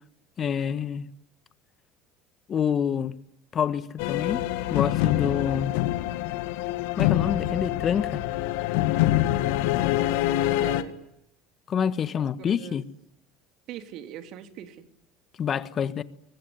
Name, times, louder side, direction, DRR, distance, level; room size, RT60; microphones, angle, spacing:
voice 1, 0.4-1.1 2.5-3.1 3.5-4.4 4.7-5.8 7.0-8.2 11.7-12.8 15.4-16.0, left 8 dB, 40° left, 1.5 m, -27 dB
sound 1, 4.0-10.8, left 15 dB, 70° left, 1.7 m, -25 dB
voice 2, 10.2-11.0 12.4-12.8 13.7-14.8, right 10 dB, 55° right, 3.1 m, -41 dB
24.0 x 23.0 x 9.7 m
hypercardioid pair, 70°, 0 cm